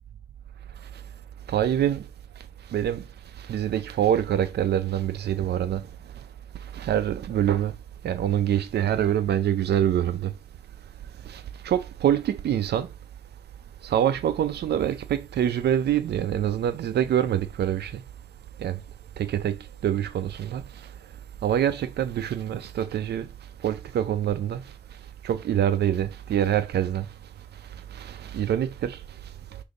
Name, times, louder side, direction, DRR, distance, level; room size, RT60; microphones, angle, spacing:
voice 1, 1.5-2.0 2.7-3.0 3.5-5.8 6.7-7.7 8.0-10.3 11.3-12.9 13.8-17.9 18.6-18.8 19.2-19.6 19.8-20.6 21.4-23.3 23.6-24.6 25.2-27.1 27.9-29.0, right 10 dB, 90° right, 0.5 m, -25 dB
6.6 x 2.7 x 5.3 m
wide cardioid pair, 125°, 17 cm